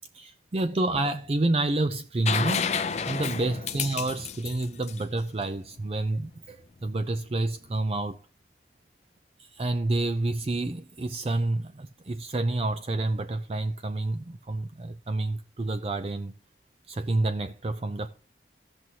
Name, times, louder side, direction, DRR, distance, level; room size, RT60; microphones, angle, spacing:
voice 1, 0.1-2.8 3.1-8.2 9.4-16.3 16.9-18.1, right 2 dB, 35° right, 0.4 m, -29 dB
sound 1, 2.3-6.0 7.8-7.9, left 6 dB, 35° left, 0.4 m, -31 dB
16.0 x 6.1 x 2.8 m
head